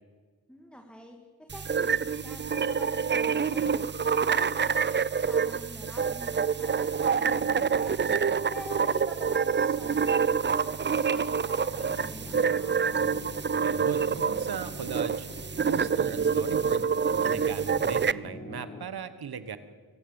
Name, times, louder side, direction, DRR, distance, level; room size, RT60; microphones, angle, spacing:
voice 1, 0.5-1.2 1.5-12.8, left 1 dB, 5° left, 3 dB, 2.1 m, -46 dB
sound 1, 1.5-18.1, right 6 dB, 30° right, 0.5 m, -27 dB
sound 2, 11.7-18.8, left 2 dB, 25° left, 1.7 m, -45 dB
voice 2, 13.6-15.3 15.7-16.8 17.2-19.6, right 6 dB, 75° right, 12 dB, 1.5 m, -37 dB
24.5 x 15.0 x 7.3 m, 1.5 s
cardioid pair, 70°, 38 cm